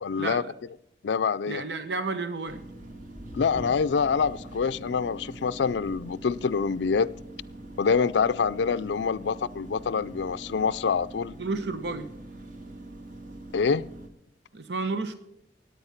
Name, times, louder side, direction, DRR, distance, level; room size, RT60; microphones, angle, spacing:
voice 1, 0.0-0.4 1.0-1.6 3.3-7.1 7.8-11.3 13.5-13.8, left 5 dB, 85° left, 0.4 m, -26 dB
voice 2, 1.5-2.6 11.4-12.1 14.5-15.1, right 3 dB, 75° right, 1.1 m, -31 dB
sound 1, 2.5-14.1, right 1 dB, 50° right, 1.8 m, -43 dB
17.5 x 9.2 x 5.8 m
head